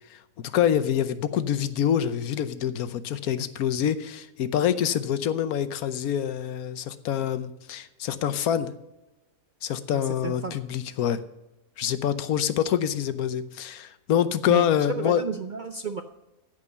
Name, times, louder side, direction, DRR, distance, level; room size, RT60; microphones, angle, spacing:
voice 1, 0.1-8.7 9.6-11.2 11.8-15.2, left 9 dB, 80° left, 12 dB, 1.2 m, -26 dB
voice 2, 9.9-10.5 14.5-14.7 15.0-16.0, right 5 dB, 50° right, 7 dB, 0.5 m, -32 dB
15.0 x 5.4 x 6.7 m, 0.97 s
omnidirectional pair, 1.5 m